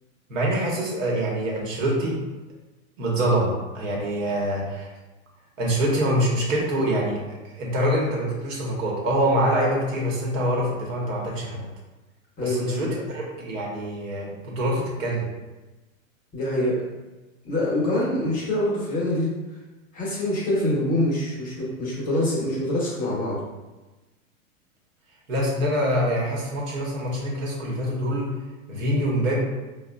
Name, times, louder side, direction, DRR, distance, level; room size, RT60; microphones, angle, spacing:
voice 1, 0.3-2.2 3.0-4.9 5.6-11.6 12.4-15.2 25.3-28.3 28.7-29.4, right 1 dB, 65° right, -2 dB, 1.1 m, -25 dB
voice 2, 12.4-13.0 16.3-16.8 17.4-19.3 19.9-23.4, left 1 dB, 20° left, -6 dB, 0.8 m, -25 dB
3.9 x 2.2 x 2.2 m, 1.1 s
hypercardioid pair, 120°, 42 cm